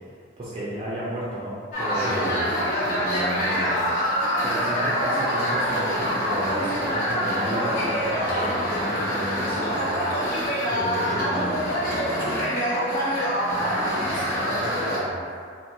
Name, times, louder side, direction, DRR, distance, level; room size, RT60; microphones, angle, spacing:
voice 1, 0.4-2.4 4.4-10.1 13.4-15.2, equal, 30° right, -8 dB, 0.4 m, -33 dB
sound 1, 1.7-15.0, equal, 50° left, 0.8 m, -25 dB
voice 2, 1.9-4.1 10.7-12.4, right 1 dB, 10° left, -13 dB, 1.2 m, -33 dB
2.7 x 2.5 x 2.9 m, 2.1 s
head